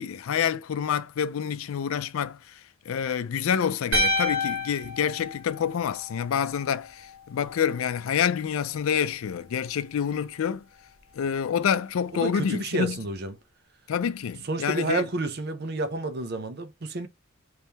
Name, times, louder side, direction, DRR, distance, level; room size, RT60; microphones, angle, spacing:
voice 1, 0.0-2.6 2.9-10.6 11.1-13.0 13.9-15.1, left 8 dB, 90° left, 0.4 m, -27 dB
sound 1, 3.9-6.2, left 1 dB, 90° right, 1.6 m, -28 dB
voice 2, 12.2-13.3 14.4-17.1, right 2 dB, 50° right, 0.7 m, -30 dB
3.6 x 3.2 x 2.8 m
head